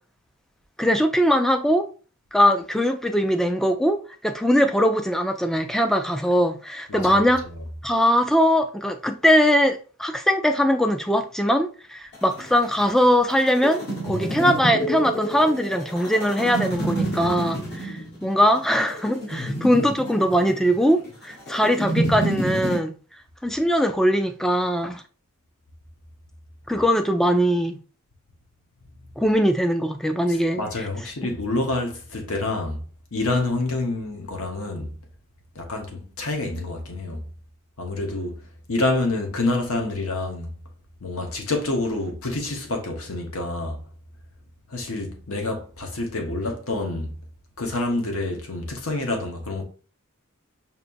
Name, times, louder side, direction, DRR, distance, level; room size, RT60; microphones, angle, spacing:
voice 1, 0.8-1.9 2.3-7.4 7.8-22.9 23.4-25.0 26.7-27.8 29.2-30.8, equal, ahead, 0.3 m, -21 dB
voice 2, 6.9-7.5 30.3-32.8 33.1-34.9 35.5-37.2 37.8-40.5 41.0-43.8 44.7-47.2 47.6-49.6, left 2 dB, 80° left, 1.0 m, -27 dB
sound 1, 12.1-22.8, right 1 dB, 50° left, 1.4 m, -28 dB
5.2 x 2.9 x 2.6 m
head